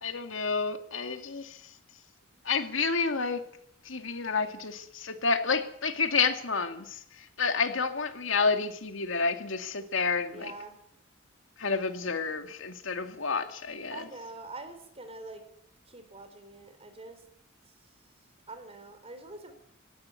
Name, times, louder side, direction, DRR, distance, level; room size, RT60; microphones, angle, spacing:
voice 1, 0.0-1.6 2.4-3.4 3.8-7.0 7.4-10.5 11.6-14.0, left 4 dB, 75° left, 2.2 m, -29 dB
voice 2, 10.3-10.8 13.9-15.4 15.9-17.2 18.5-19.5, right 2 dB, 30° right, 4.0 m, -44 dB
18.5 x 15.0 x 9.6 m
head